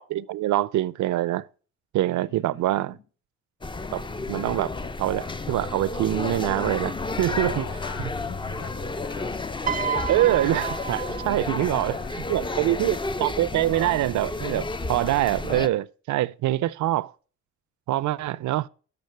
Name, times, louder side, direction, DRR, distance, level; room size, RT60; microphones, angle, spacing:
voice 1, 0.0-1.4 1.9-3.0 3.9-7.6 10.1-12.0 12.3-17.1 17.9-18.7, right 14 dB, 70° right, 0.6 m, -25 dB
voice 2, 2.2-3.0 7.3-9.5 11.4-13.0, left 7 dB, 85° left, 2.0 m, -43 dB
sound 1, 3.6-15.7, left 3 dB, 15° left, 0.6 m, -32 dB
Bowed string instrument, 5.1-10.4, left 3 dB, 65° left, 3.0 m, -43 dB
Piano, 9.7-12.0 13.1-13.3, right 8 dB, 30° right, 0.3 m, -31 dB
12.0 x 6.2 x 4.5 m
cardioid pair, 90°, 30 cm